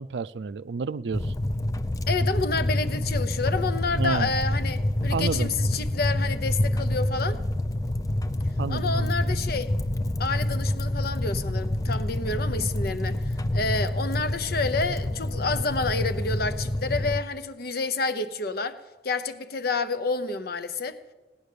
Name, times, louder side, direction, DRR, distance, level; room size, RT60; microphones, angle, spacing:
voice 1, 0.0-1.3 4.0-4.3 5.1-5.5 8.6-9.1, right 4 dB, 75° right, 0.4 m, -30 dB
sound 1, 1.1-17.2, left 1 dB, 20° left, 0.5 m, -27 dB
voice 2, 2.1-7.4 8.7-9.7 10.2-21.0, left 3 dB, 60° left, 0.8 m, -29 dB
17.0 x 10.5 x 6.8 m
head